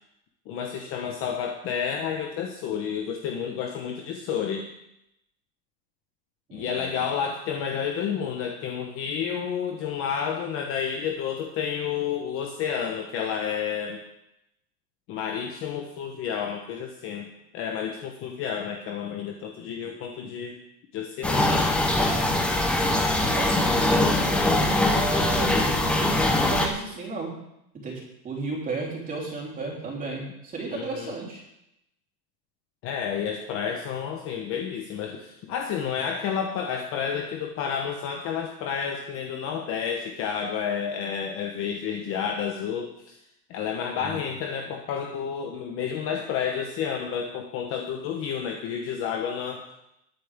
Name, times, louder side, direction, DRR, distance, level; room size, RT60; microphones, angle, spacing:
voice 1, 0.5-4.7 6.5-14.0 15.1-17.3 17.5-20.6 20.9-21.6 30.7-31.2 32.8-43.2 43.5-49.6, left 7 dB, 25° left, 3 dB, 1.0 m, -30 dB
voice 2, 6.5-7.0 23.3-27.4 27.7-31.4 44.0-44.2, right 3 dB, 15° right, -3 dB, 3.5 m, -34 dB
sound 1, 21.2-26.7, left 1 dB, ahead, 0.6 m, -22 dB
20.5 x 8.5 x 3.6 m, 0.82 s
supercardioid pair, 160°, 48 cm